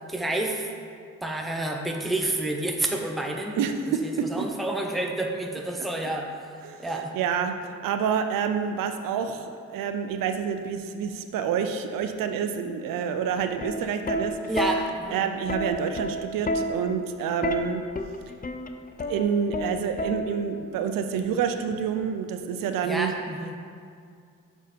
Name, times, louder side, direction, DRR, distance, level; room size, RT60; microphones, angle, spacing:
voice 1, 0.1-0.7 1.2-3.6 4.0-6.3 6.8-7.1 14.5-15.2 22.8-23.6, right 1 dB, ahead, 1 dB, 0.8 m, -29 dB
voice 2, 3.6-4.3 6.6-14.4 15.1-17.8 19.0-23.1, right 7 dB, 85° right, 7 dB, 0.5 m, -28 dB
Plucked string instrument, 13.4-20.6 21.7-22.0, left 1 dB, 25° left, 0.6 m, -31 dB
6.3 x 5.3 x 5.1 m, 2.3 s
supercardioid pair, 45°, 32 cm